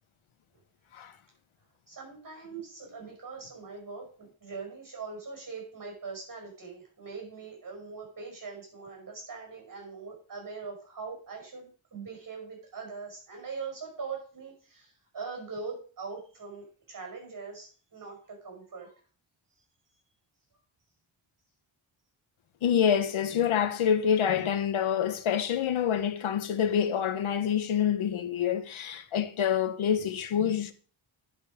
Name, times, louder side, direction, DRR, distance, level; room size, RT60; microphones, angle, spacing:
voice 1, 1.9-18.9, right 4 dB, 40° right, 5.4 m, -42 dB
voice 2, 22.6-30.7, left 8 dB, 80° left, 1.1 m, -27 dB
10.5 x 5.3 x 5.0 m
wide cardioid pair, 110°, 48 cm